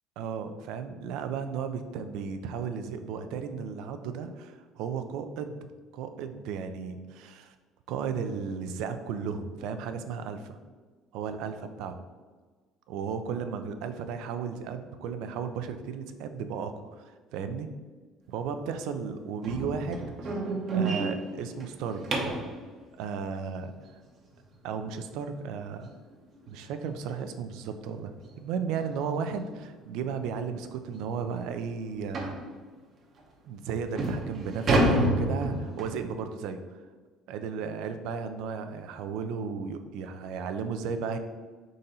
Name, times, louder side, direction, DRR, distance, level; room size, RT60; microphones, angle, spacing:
voice 1, 0.2-5.6 5.9-7.5 7.9-10.6 11.1-12.0 12.9-17.7 18.3-22.0 23.0-23.7 24.6-25.9 26.5-32.4 33.4-36.6 37.3-41.2, right 6 dB, 75° right, 8 dB, 0.4 m, -34 dB
sound 1, 19.4-22.5 25.3-25.4 25.9-26.1 26.5-26.6 27.1-27.2 28.2-28.4 28.8-28.9 29.6-29.7 30.0-30.1 30.6-30.7 32.1-32.4 33.2-33.3 33.8-36.0, right 1 dB, 45° right, 0.8 m, -28 dB
3.8 x 2.7 x 4.1 m, 1.4 s
cardioid pair, 105°, 0 cm